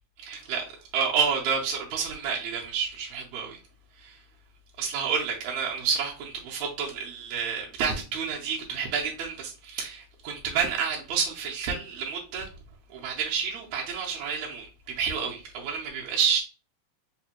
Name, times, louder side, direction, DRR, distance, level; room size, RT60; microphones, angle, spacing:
voice 1, 0.2-3.6 4.0-4.2 4.8-12.5 12.9-14.7 15.0-16.4, right 6 dB, 75° right, 1.8 m, -29 dB
4.8 x 2.2 x 2.9 m
omnidirectional pair, 3.5 m